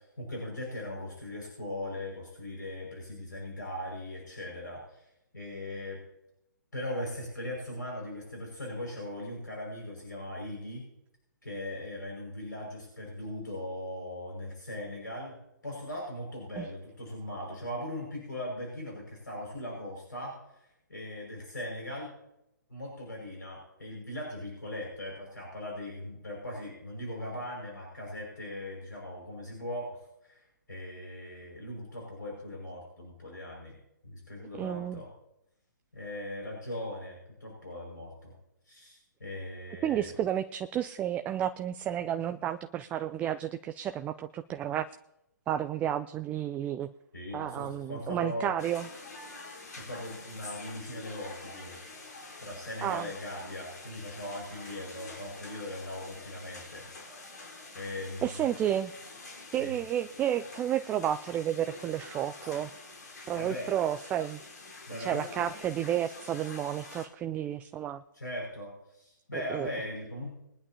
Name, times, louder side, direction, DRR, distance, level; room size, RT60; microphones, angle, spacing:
voice 1, 0.2-5.1 5.3-6.0 6.7-10.9 11.4-15.3 15.6-22.1 22.7-33.8 34.0-35.1 35.9-38.3 38.6-40.1 47.1-48.5 49.7-51.8 52.4-56.9 57.7-58.5 59.5-59.8 63.3-63.7 64.9-65.5 68.1-70.3, left 1 dB, 80° left, -2 dB, 5.8 m, -39 dB
voice 2, 34.6-35.0 39.8-44.9 45.5-46.9 47.3-48.9 52.8-53.1 58.2-58.9 59.5-62.7 63.3-64.4 65.0-68.0 69.3-69.7, right 10 dB, 15° right, 10 dB, 0.4 m, -31 dB
sound 1, 48.6-67.1, left 3 dB, 60° left, 4.3 m, -47 dB
22.0 x 11.0 x 2.9 m, 0.85 s
figure-of-eight pair, 130°, 10 cm